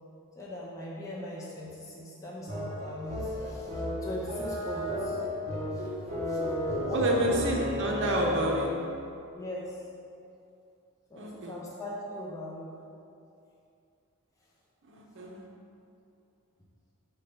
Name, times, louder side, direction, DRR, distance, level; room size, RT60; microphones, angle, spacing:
voice 1, 0.4-5.2 5.7-7.3 7.9-8.2 9.3-9.8 11.1-12.7, left 1 dB, 15° left, -6 dB, 0.7 m, -40 dB
sound 1, 2.5-8.9, left 1 dB, 30° right, 1.4 m, -33 dB
voice 2, 6.9-8.7 11.2-11.6 14.9-15.5, right 1 dB, 60° right, 0 dB, 0.7 m, -29 dB
5.7 x 4.5 x 5.1 m, 2.6 s
head